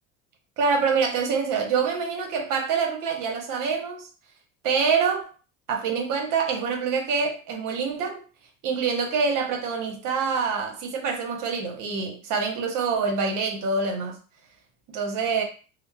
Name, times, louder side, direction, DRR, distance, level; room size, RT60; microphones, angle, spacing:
voice 1, 0.6-4.1 4.6-5.3 5.7-8.2 8.6-14.2 14.9-15.4, right 5 dB, 50° right, 0.9 m, -26 dB
2.9 x 2.0 x 2.2 m
hypercardioid pair, 80°, 40 cm